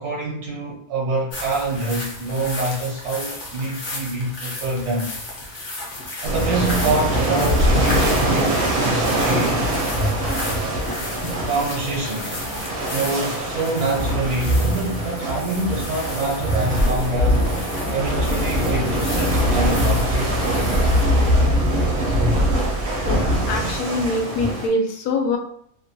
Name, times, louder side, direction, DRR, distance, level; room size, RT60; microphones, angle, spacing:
voice 1, 0.0-5.1 6.2-9.6 11.4-12.3 12.9-17.5 17.9-20.8 21.8-22.2, right 2 dB, 80° right, -3 dB, 1.1 m, -26 dB
sound 1, 1.3-21.0, left 1 dB, 50° left, 0.5 m, -34 dB
sound 2, 6.2-24.7, equal, 50° right, 0.7 m, -22 dB
voice 2, 23.1-25.4, left 2 dB, 80° left, 3 dB, 1.1 m, -24 dB
2.9 x 2.1 x 2.6 m, 0.66 s
omnidirectional pair, 1.6 m